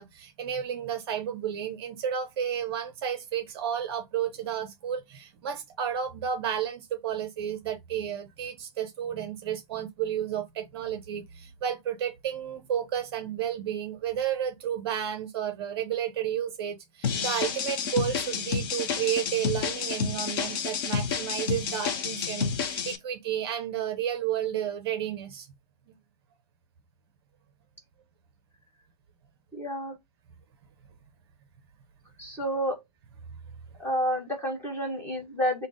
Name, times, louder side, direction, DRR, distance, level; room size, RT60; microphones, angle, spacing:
voice 1, 0.0-25.5 25.9-26.0, right 9 dB, 40° right, 0.6 m, -32 dB
sound 1, 17.0-23.0, left 6 dB, 35° left, 0.6 m, -30 dB
voice 2, 29.5-29.9 32.2-32.8 33.8-35.7, equal, 10° left, 1.1 m, -29 dB
3.4 x 2.0 x 3.7 m
hypercardioid pair, 140°, 21 cm